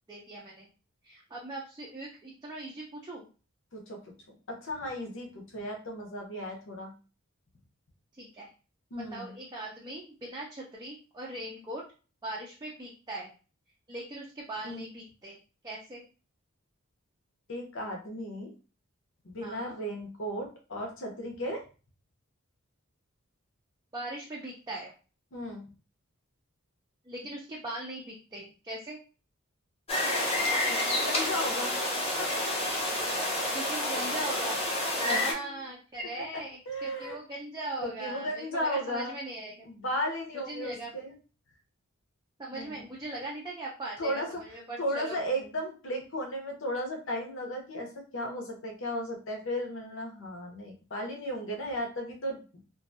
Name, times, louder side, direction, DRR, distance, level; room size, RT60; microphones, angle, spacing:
voice 1, 0.1-0.6 1.0-3.2 8.2-8.5 9.1-11.8 12.2-13.3 13.9-15.4 15.6-16.0 19.4-19.7 23.9-24.9 27.0-29.0 33.5-34.6 35.0-39.5 40.5-40.9 42.4-45.2, right 2 dB, 20° right, -4 dB, 0.4 m, -40 dB
voice 2, 4.3-6.9 8.9-9.3 14.6-14.9 17.5-18.5 19.2-21.6 25.3-25.7 30.8-32.4 35.0-35.6 36.7-37.1 37.8-39.2 39.6-41.1 42.5-42.9 44.0-44.4 44.8-52.4, equal, 60° left, 2 dB, 0.8 m, -35 dB
sound 1, 29.9-35.3, left 1 dB, 25° left, 0.6 m, -29 dB
2.5 x 2.3 x 2.6 m, 0.35 s
head